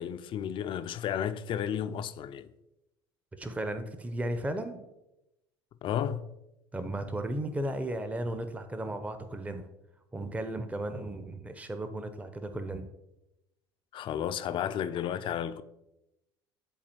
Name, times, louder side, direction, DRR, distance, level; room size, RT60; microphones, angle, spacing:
voice 1, 0.0-2.5 5.8-6.3 13.9-15.6, left 9 dB, 40° left, 0.4 m, -32 dB
voice 2, 3.4-4.8 6.7-9.7 10.1-12.9, right 1 dB, 10° right, 0.6 m, -35 dB
10.5 x 4.1 x 2.9 m
figure-of-eight pair, 65°, 13 cm